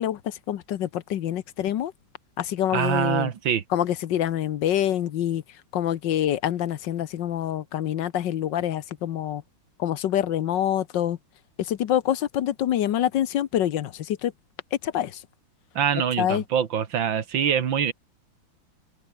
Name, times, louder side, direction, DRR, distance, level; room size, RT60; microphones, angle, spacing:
voice 1, 0.0-1.9 2.4-3.3 3.7-5.4 5.7-9.4 9.8-11.2 11.6-14.3 14.7-15.2 16.2-16.4, left 11 dB, 70° left, 1.5 m, -26 dB
voice 2, 2.7-3.6 15.8-17.9, right 8 dB, 75° right, 2.3 m, -24 dB
omnidirectional pair, 2.1 m